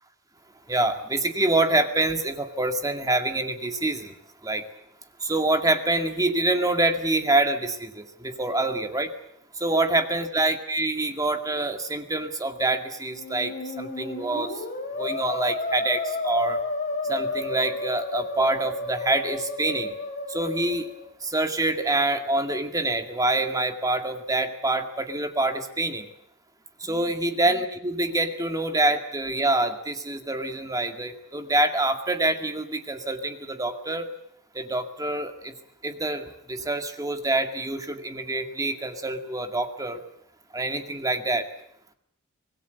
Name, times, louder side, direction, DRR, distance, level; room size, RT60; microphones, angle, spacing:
voice 1, 0.7-4.1 4.4-4.6 5.2-9.1 9.6-13.5 13.8-14.5 15.0-16.6 17.1-19.9 20.3-20.9 21.2-26.1 26.8-34.1 34.6-35.5 35.8-40.0 40.5-41.4, right 2 dB, 15° right, 7 dB, 2.1 m, -26 dB
Musical instrument, 13.1-21.1, left 3 dB, 35° left, 3.9 m, -32 dB
25.5 x 20.0 x 8.1 m, 0.70 s
head